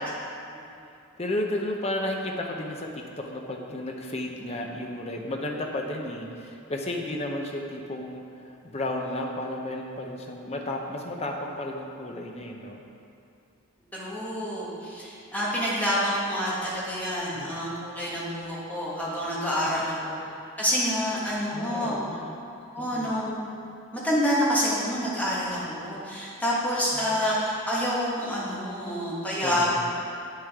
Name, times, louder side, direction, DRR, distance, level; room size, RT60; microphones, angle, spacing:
voice 1, 1.2-8.2 8.6-12.8 17.3-17.5 19.7-20.2 21.5-22.3 22.8-23.2 26.9-27.2 29.4-29.7, left 1 dB, 30° left, 1 dB, 0.6 m, -33 dB
voice 2, 13.9-20.1 20.6-22.0 22.7-23.4 23.9-29.7, equal, 5° left, -7 dB, 1.3 m, -28 dB
8.1 x 6.5 x 3.6 m, 2.6 s
head